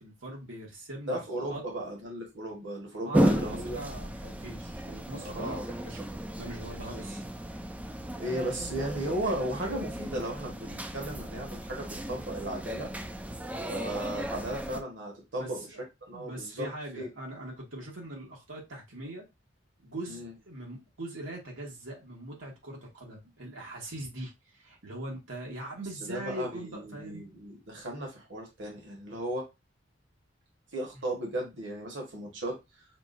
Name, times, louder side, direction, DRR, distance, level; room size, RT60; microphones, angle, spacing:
voice 1, 0.0-1.2 1.5-1.6 3.0-6.0 6.4-7.2 8.5-8.6 15.4-15.8 16.1-19.2 19.8-27.3, right 1 dB, 90° right, -1 dB, 1.4 m, -41 dB
voice 2, 1.1-3.8 5.2-5.7 8.2-12.9 13.6-15.6 16.1-16.7 16.9-17.1 20.1-20.3 26.0-29.5 30.7-32.9, right 1 dB, 70° right, 0 dB, 1.3 m, -35 dB
sound 1, 3.1-14.8, equal, 5° right, 0.3 m, -34 dB
5.9 x 2.3 x 2.5 m, 0.23 s
head